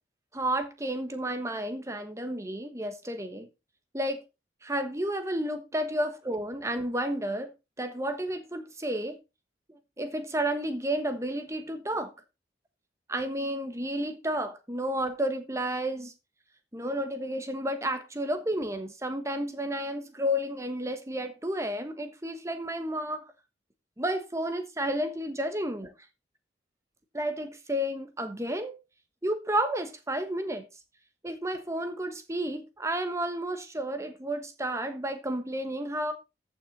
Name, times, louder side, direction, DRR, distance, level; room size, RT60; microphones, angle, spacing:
voice 1, 0.3-3.5 3.9-4.2 4.6-7.5 7.8-9.2 10.0-12.1 13.1-16.1 16.7-23.3 24.0-25.9 27.1-28.8 29.2-30.7 31.2-36.1, right 1 dB, 15° right, 1.3 m, -31 dB
14.0 x 6.2 x 3.9 m
head